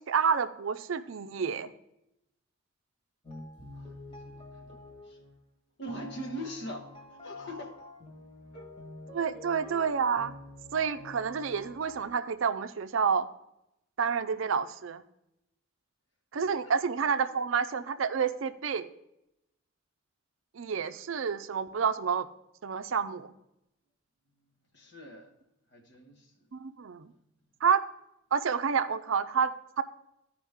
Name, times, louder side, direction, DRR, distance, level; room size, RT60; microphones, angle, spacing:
voice 1, 0.1-1.7 9.1-10.3 10.7-13.3 14.0-15.0 16.3-18.9 20.5-22.3 22.6-23.3 26.5-27.1 27.6-27.8 28.3-29.8, right 6 dB, 70° right, 11 dB, 0.5 m, -29 dB
sound 1, 3.2-5.4 5.8-12.0, left 1 dB, 30° left, 1.6 m, -47 dB
voice 2, 3.7-4.8 5.0-5.2 5.8-7.8 8.5-8.7 16.6-16.7 24.7-25.3 25.7-26.3, equal, 55° left, 4 dB, 1.2 m, -42 dB
14.0 x 5.0 x 3.6 m, 0.85 s
head